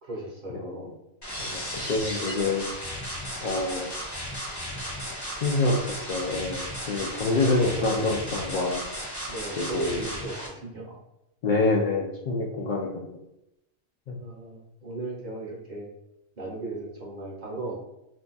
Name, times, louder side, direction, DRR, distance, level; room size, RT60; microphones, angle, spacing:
voice 1, 0.0-0.9 7.0-7.8 9.3-11.0 14.2-15.9 16.4-17.8, right 2 dB, 40° right, -4 dB, 0.8 m, -37 dB
voice 2, 0.5-0.9 1.4-2.7 3.4-4.0 5.4-8.8 9.6-10.0 11.4-13.2 14.1-14.2, left 2 dB, 75° left, -1 dB, 0.4 m, -27 dB
sound 1, 1.2-10.5, equal, 25° left, 0.7 m, -35 dB
2.5 x 2.3 x 3.9 m, 0.87 s
omnidirectional pair, 1.3 m